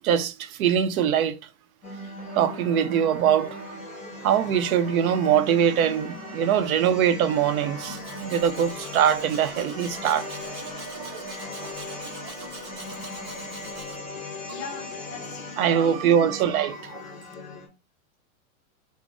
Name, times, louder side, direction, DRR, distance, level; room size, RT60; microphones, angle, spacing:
voice 1, 0.0-1.4 2.4-3.6 4.2-10.3 10.7-11.3 15.6-17.0, right 9 dB, 80° right, 0.6 m, -23 dB
sound 1, 1.8-17.7, left 3 dB, 15° left, 1.2 m, -39 dB
sound 2, 2.2-13.9, right 5 dB, 45° right, 0.9 m, -44 dB
Domestic sounds home sounds, 7.8-14.0, right 3 dB, 25° right, 0.3 m, -44 dB
voice 2, 14.5-16.4, left 4 dB, 35° left, 0.6 m, -41 dB
3.8 x 2.0 x 3.6 m
supercardioid pair, 155°, 42 cm